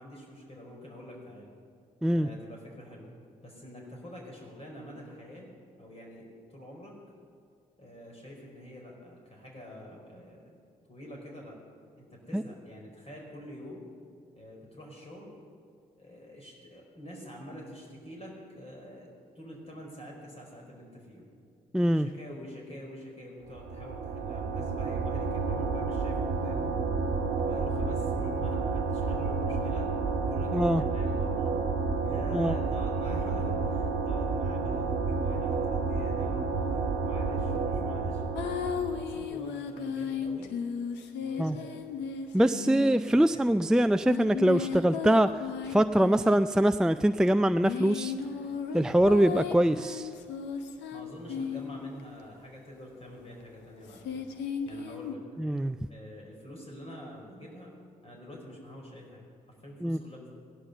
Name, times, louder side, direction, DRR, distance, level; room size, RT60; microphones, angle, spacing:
voice 1, 0.0-1.5 2.1-3.1 3.4-5.5 5.8-6.9 7.8-10.5 10.9-11.6 12.0-13.8 14.3-15.3 16.0-19.1 19.3-21.3 21.9-26.7 27.3-29.9 30.2-31.6 32.0-38.2 38.8-40.5 41.2-41.8 42.3-43.5 49.5-49.7 50.9-54.2 54.6-55.2 55.9-57.7 58.0-59.3 59.6-60.3, equal, 35° left, -1 dB, 4.9 m, -46 dB
voice 2, 21.7-22.1 30.5-30.8 32.3-32.6 41.4-41.6 42.3-45.4 45.7-48.1 48.7-50.0 55.4-55.8 59.8-60.0, right 1 dB, 5° right, 10 dB, 0.4 m, -23 dB
sound 1, 23.5-39.4, right 4 dB, 75° right, 1.1 m, -30 dB
sound 2, 38.4-43.3 44.0-46.5 47.4-52.0 53.9-55.1, left 6 dB, 75° left, 1.1 m, -35 dB
16.5 x 11.0 x 6.8 m, 2.3 s
hypercardioid pair, 40°, 18 cm